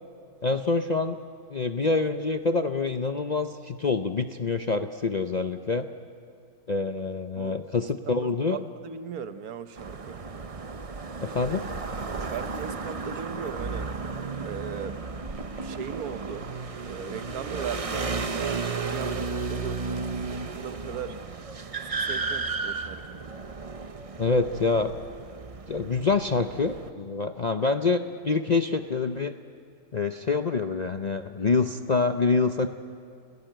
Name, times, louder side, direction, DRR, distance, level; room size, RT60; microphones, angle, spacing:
voice 1, 0.4-1.2 1.5-5.9 6.7-8.6 11.2-11.6 24.2-24.9 25.7-29.3 29.9-32.7, left 4 dB, 45° left, 7 dB, 0.5 m, -26 dB
voice 2, 7.4-10.2 12.1-13.9 14.4-15.0 15.6-16.5 16.8-21.2 21.8-23.2, right 8 dB, 75° right, 11 dB, 1.4 m, -38 dB
sound 1, 9.8-26.9, right 4 dB, 30° right, 0.7 m, -34 dB
30.0 x 17.0 x 9.1 m, 2.4 s
omnidirectional pair, 1.6 m